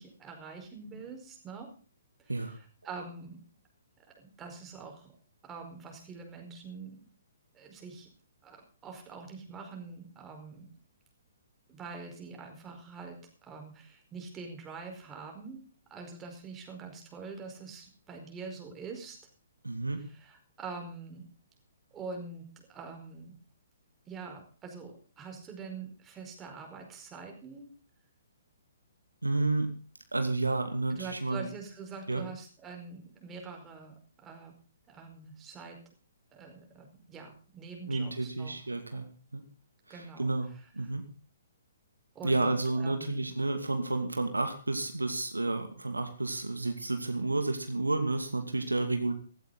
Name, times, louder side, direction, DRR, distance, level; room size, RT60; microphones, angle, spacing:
voice 1, 0.0-1.7 2.2-3.4 4.2-5.1 5.4-7.0 7.5-8.1 8.4-8.6 8.8-10.7 11.7-15.6 15.9-19.2 19.9-21.3 21.9-23.3 24.1-27.7 30.9-34.5 34.9-35.8 36.3-38.5 38.9-39.0 39.9-40.9 42.1-42.5 42.7-43.3, right 4 dB, 15° right, 3 dB, 4.9 m, -45 dB
voice 2, 19.6-20.0 29.2-29.7 30.1-31.4 32.1-32.3 37.9-39.1 39.3-39.4 39.9-40.5 40.7-41.1 42.2-49.1, right 2 dB, 80° right, 6 dB, 2.5 m, -31 dB
16.0 x 14.0 x 4.1 m, 0.38 s
figure-of-eight pair, 125°, 0 cm